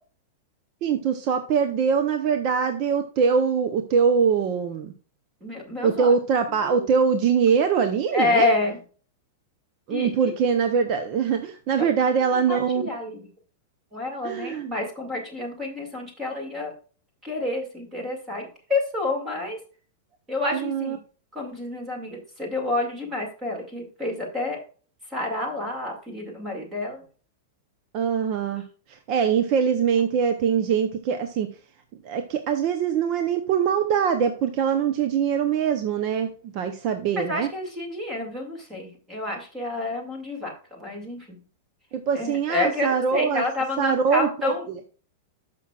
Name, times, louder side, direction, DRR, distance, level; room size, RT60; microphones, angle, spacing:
voice 1, 0.8-4.9 5.8-8.5 9.9-12.9 14.2-14.7 20.5-21.0 27.9-31.5 32.0-37.5 41.9-43.4 43.8-44.8, right 6 dB, 30° right, 7 dB, 0.7 m, -23 dB
voice 2, 5.4-6.1 6.6-6.9 8.1-8.8 9.9-10.1 12.5-13.2 13.9-16.7 17.2-19.6 20.3-21.0 21.3-24.6 25.1-27.0 37.2-41.4 42.1-44.6, left 2 dB, 10° right, 0 dB, 2.1 m, -29 dB
13.5 x 6.0 x 2.4 m, 0.40 s
supercardioid pair, 175°, 0 cm